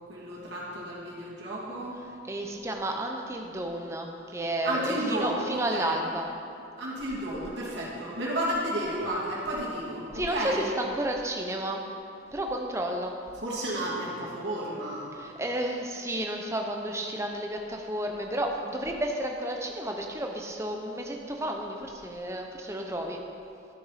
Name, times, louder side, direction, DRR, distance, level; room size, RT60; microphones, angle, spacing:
voice 1, 0.0-2.0 4.6-5.9 6.8-10.7 13.4-15.1, right 1 dB, 60° right, -7 dB, 2.6 m, -32 dB
voice 2, 2.3-6.3 10.1-11.8 12.3-13.2 15.1-23.2, right 1 dB, 15° right, 2 dB, 0.8 m, -32 dB
13.0 x 6.6 x 4.2 m, 2.5 s
head